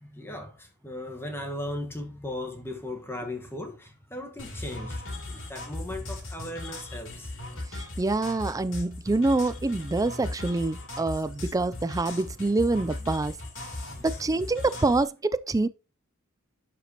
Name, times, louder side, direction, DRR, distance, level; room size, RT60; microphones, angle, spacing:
voice 1, 0.0-7.3 13.9-14.3, left 1 dB, 10° left, 1.3 m, -37 dB
sound 1, 4.4-15.0, left 2 dB, 65° left, 3.0 m, -38 dB
voice 2, 7.7-13.4 14.0-15.7, right 2 dB, 15° right, 0.3 m, -26 dB
11.5 x 5.1 x 2.9 m
head